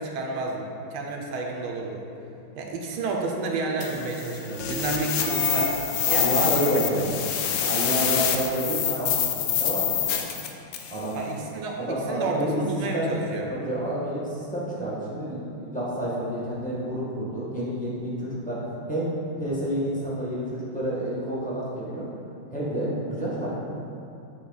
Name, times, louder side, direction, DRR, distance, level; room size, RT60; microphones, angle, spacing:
voice 1, 0.0-2.0 2.6-5.8 6.1-6.7 11.1-13.5, right 3 dB, 80° right, 0 dB, 1.5 m, -30 dB
sound 1, 3.8-11.0, left 8 dB, 75° left, 1.3 m, -26 dB
voice 2, 6.1-10.2 10.9-11.2 11.8-12.6 12.9-13.1 13.5-18.6 18.9-22.1 22.5-23.6, right 1 dB, 5° left, -8 dB, 1.0 m, -29 dB
8.4 x 3.9 x 3.9 m, 2.7 s
omnidirectional pair, 2.3 m